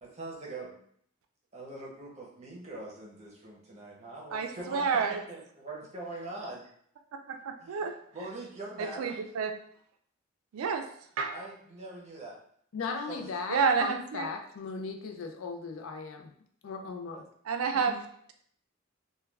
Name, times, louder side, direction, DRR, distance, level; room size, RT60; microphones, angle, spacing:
voice 1, 0.0-0.8 1.5-6.7 7.6-7.8 8.1-9.2 11.3-12.4 13.1-13.3 17.1-17.2, right 2 dB, 30° right, -3 dB, 0.7 m, -43 dB
voice 2, 4.3-5.2 7.3-8.3 8.8-9.5 10.5-10.8 11.2-11.4 13.5-14.3 17.5-18.0, right 5 dB, 85° right, 5 dB, 0.4 m, -29 dB
voice 3, 12.7-16.3 16.6-17.2 17.7-18.0, left 4 dB, 70° left, 4 dB, 0.4 m, -37 dB
2.3 x 2.2 x 3.2 m, 0.63 s
head